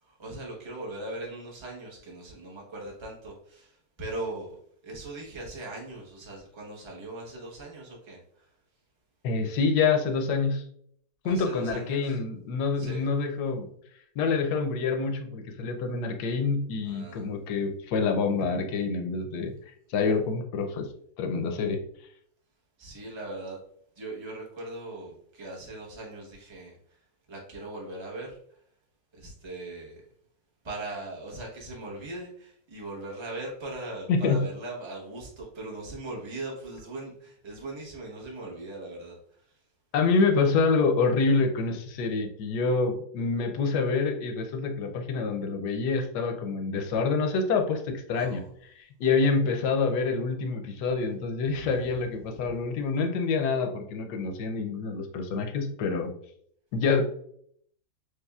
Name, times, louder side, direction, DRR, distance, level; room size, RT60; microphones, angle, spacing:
voice 1, 0.0-4.6 4.8-8.5 11.2-12.2 12.8-13.1 16.8-17.3 22.8-23.6 24.0-27.0 27.3-28.6 29.1-30.0 30.6-39.6 48.1-48.5 51.5-52.4, right 2 dB, 20° right, -3 dB, 0.7 m, -40 dB
voice 2, 9.2-10.6 11.2-13.7 14.2-19.5 19.9-20.9 21.2-21.8 34.1-34.4 39.9-48.4 48.8-56.1 56.7-57.0, left 4 dB, 70° left, 4 dB, 1.2 m, -27 dB
6.3 x 2.5 x 2.3 m, 0.66 s
omnidirectional pair, 2.0 m